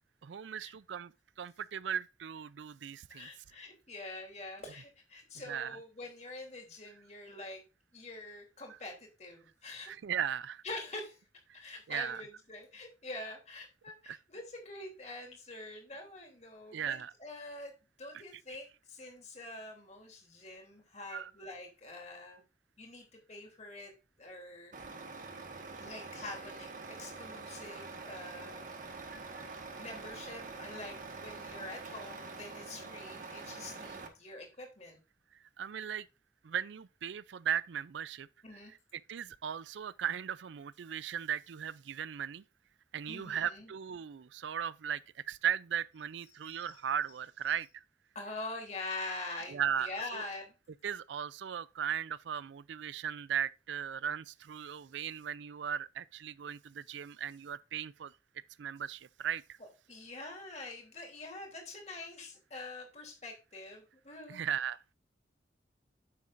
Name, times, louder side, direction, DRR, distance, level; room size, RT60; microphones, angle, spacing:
voice 1, 0.2-1.1 1.4-3.3 5.5-5.8 9.9-10.6 11.9-12.2 14.1-14.2 16.7-17.1 21.1-21.3 35.6-36.1 36.4-38.3 38.5-38.6 38.9-42.4 42.9-45.0 45.3-47.7 49.5-50.2 50.8-58.1 58.6-59.4 64.3-64.8, right 8 dB, 75° right, 0.4 m, -37 dB
voice 2, 3.1-7.6 7.9-9.9 10.6-11.2 11.5-17.7 18.0-22.4 22.8-23.9 24.2-24.7 25.7-26.7 27.0-29.0 29.8-35.0 38.4-38.7 43.1-43.7 46.5-46.7 48.1-50.5 59.9-64.4, left 2 dB, 35° left, 3.0 m, -45 dB
Truck, 24.7-34.1, right 4 dB, 45° right, 1.4 m, -45 dB
9.5 x 7.5 x 2.5 m
head